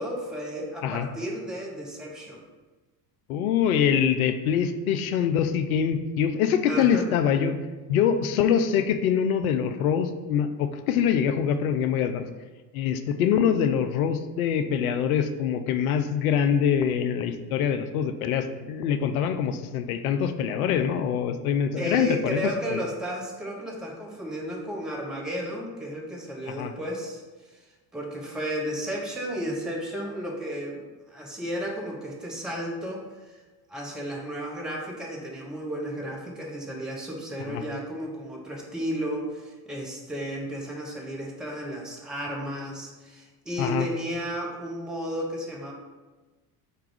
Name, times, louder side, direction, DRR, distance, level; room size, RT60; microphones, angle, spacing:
voice 1, 0.0-2.4 6.7-7.1 21.8-27.2 27.9-33.4 33.7-45.7, equal, ahead, -2 dB, 0.3 m, -33 dB
voice 2, 3.3-7.6 7.9-12.2 12.7-22.4 22.7-22.8 26.5-26.7 37.5-37.6 43.6-43.9, left 8 dB, 60° left, 9 dB, 0.5 m, -24 dB
4.7 x 2.3 x 4.7 m, 1.2 s
figure-of-eight pair, 70°, 49 cm